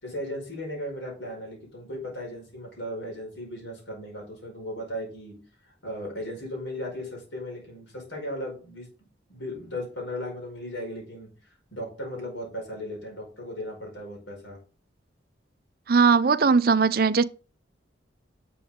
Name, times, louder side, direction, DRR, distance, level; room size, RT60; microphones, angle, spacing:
voice 1, 0.0-5.4 5.6-8.9 9.3-14.6, left 1 dB, 75° left, 5.2 m, -36 dB
voice 2, 15.9-17.2, right 5 dB, 50° right, 0.4 m, -19 dB
11.0 x 6.9 x 3.7 m
head